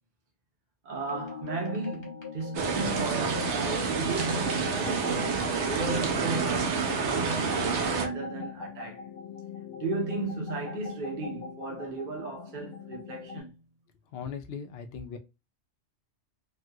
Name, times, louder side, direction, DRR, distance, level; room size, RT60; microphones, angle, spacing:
voice 1, 0.8-5.3 5.6-9.1 9.8-13.6, right 3 dB, 50° right, 0.9 m, -35 dB
sound 1, 1.1-13.4, left 5 dB, 25° left, 0.9 m, -42 dB
sound 2, 2.5-8.1, right 5 dB, 80° right, 1.0 m, -28 dB
voice 2, 14.1-15.2, left 6 dB, 65° left, 0.8 m, -38 dB
3.2 x 2.8 x 2.3 m
omnidirectional pair, 1.2 m